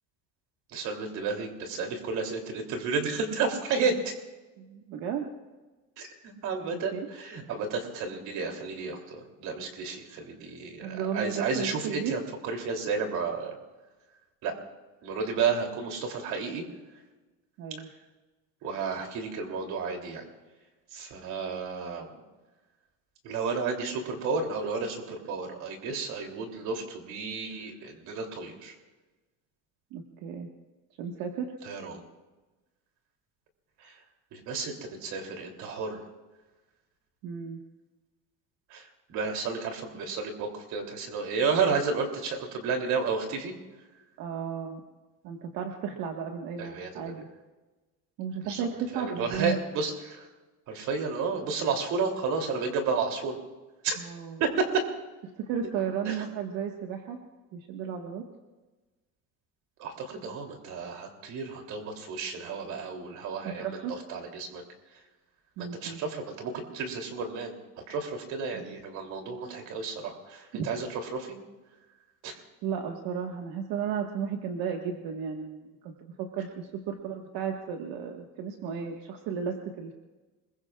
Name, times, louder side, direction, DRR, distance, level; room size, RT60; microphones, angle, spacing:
voice 1, 0.7-4.1 6.0-13.5 14.4-14.5 15.0-16.6 18.6-20.2 20.9-22.1 23.2-28.7 31.6-32.0 34.3-36.0 38.7-38.8 39.1-43.5 46.6-47.1 48.4-48.7 48.9-50.2 50.7-53.3 53.8-54.0 54.4-54.7 56.1-56.2 59.8-63.8 64.1-64.6 65.6-67.6 67.9-71.4 72.2-72.3, right 4 dB, 55° right, 2 dB, 3.2 m, -32 dB
voice 2, 4.6-5.3 6.7-7.1 10.8-12.2 17.6-17.9 29.9-30.5 31.0-31.5 37.2-37.6 44.2-44.8 45.2-47.3 48.2-49.7 54.0-54.4 55.4-57.2 57.5-58.2 63.4-63.9 65.6-66.0 68.5-68.8 70.5-70.6 72.6-79.9, right 7 dB, 80° right, 2 dB, 1.7 m, -34 dB
26.0 x 22.0 x 2.5 m, 1.2 s
cardioid pair, 175°, 34 cm